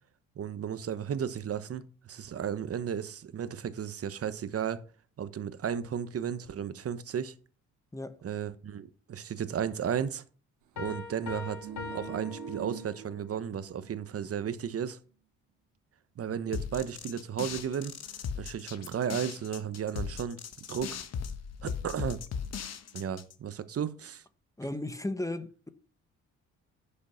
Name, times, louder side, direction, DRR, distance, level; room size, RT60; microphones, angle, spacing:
voice 1, 0.4-4.8 5.2-7.3 8.2-10.2 10.8-15.0 16.2-17.9 18.4-20.4 20.7-21.0 21.6-22.2 22.9-24.2, right 8 dB, 50° right, 1.1 m, -34 dB
Piano, 10.8-13.3, left 5 dB, 80° left, 2.6 m, -42 dB
sound 1, 11.3-13.9 14.2-14.4, right 9 dB, 90° right, 1.5 m, -44 dB
sound 2, 16.5-23.3, left 6 dB, 55° left, 1.5 m, -38 dB
voice 2, 24.6-25.7, left 1 dB, 10° left, 1.1 m, -35 dB
10.5 x 6.7 x 5.7 m
cardioid pair, 90°, 30 cm